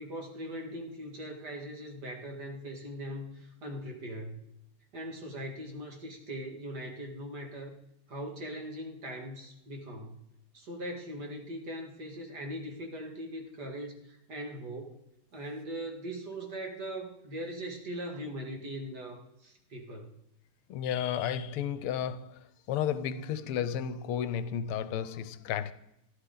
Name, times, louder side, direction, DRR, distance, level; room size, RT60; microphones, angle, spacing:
voice 1, 0.0-4.4 4.9-7.8 8.1-10.2 10.5-15.0 15.3-20.1, equal, 50° right, 2.4 m, -40 dB
voice 2, 20.7-25.7, left 9 dB, 85° left, 1.6 m, -33 dB
13.0 x 11.5 x 3.9 m
omnidirectional pair, 2.4 m